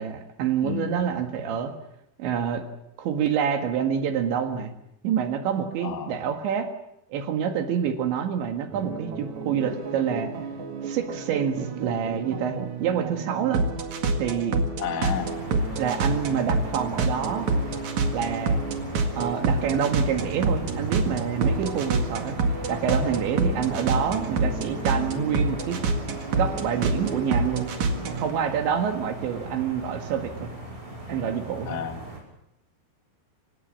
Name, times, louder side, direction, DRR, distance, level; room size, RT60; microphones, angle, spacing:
voice 1, 0.0-1.7 2.2-2.6 3.0-4.7 5.0-6.7 7.1-10.3 10.8-13.7 14.2-14.7 15.8-17.5 18.1-18.6 19.2-22.4 22.7-25.8 26.4-27.7 28.1-30.5 31.1-31.8, right 8 dB, 70° right, 6 dB, 4.0 m, -27 dB
voice 2, 0.6-0.9 5.8-6.1 14.8-15.3 31.6-32.0, left 7 dB, 70° left, 6 dB, 0.9 m, -31 dB
sound 1, 8.7-28.3, right 3 dB, 50° right, 2.6 m, -28 dB
sound 2, 15.0-32.2, right 2 dB, 15° right, 6.3 m, -38 dB
28.0 x 17.0 x 7.6 m, 0.79 s
omnidirectional pair, 5.5 m